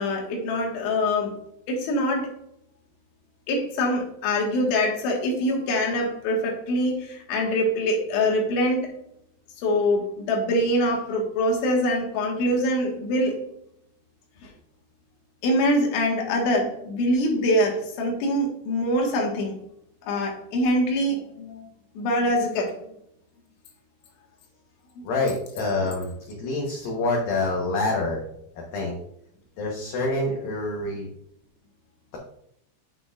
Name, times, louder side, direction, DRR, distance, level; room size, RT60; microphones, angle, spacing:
voice 1, 0.0-1.4 1.7-2.3 3.5-8.9 9.6-13.4 14.4-14.5 15.4-19.5 20.0-21.7 22.0-22.7, left 1 dB, 85° left, 0 dB, 4.0 m, -24 dB
voice 2, 25.0-28.2 28.7-29.0 29.6-31.1, left 2 dB, 65° left, -2 dB, 2.4 m, -26 dB
10.5 x 6.1 x 2.5 m, 0.73 s
omnidirectional pair, 5.3 m